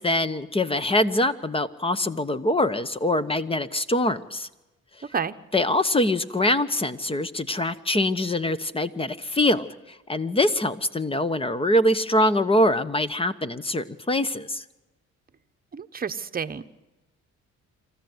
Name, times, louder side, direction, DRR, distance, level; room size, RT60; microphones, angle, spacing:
voice 1, 0.0-4.5 5.5-14.6, left 1 dB, 20° left, 13 dB, 1.1 m, -24 dB
voice 2, 15.7-16.6, right 6 dB, 30° right, 8 dB, 1.0 m, -29 dB
26.5 x 14.5 x 8.0 m, 1.1 s
cardioid pair, 90°, 30 cm